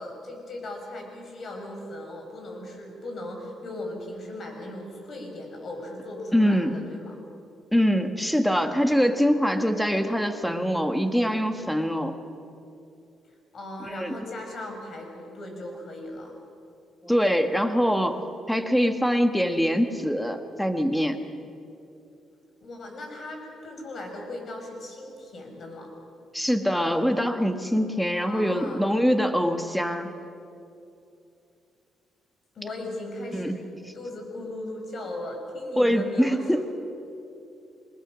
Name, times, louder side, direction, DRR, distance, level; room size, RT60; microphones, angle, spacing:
voice 1, 0.0-7.2 13.5-16.3 22.6-25.9 28.1-28.9 32.6-33.6 33.9-36.6, left 1 dB, 50° left, 2 dB, 5.3 m, -38 dB
voice 2, 6.3-6.8 7.7-12.1 13.9-14.1 17.0-18.2 18.5-21.2 26.3-30.1 33.3-33.6 35.8-36.6, equal, ahead, 7 dB, 1.6 m, -23 dB
22.5 x 20.0 x 6.4 m, 2.6 s
cardioid pair, 90°, 0 cm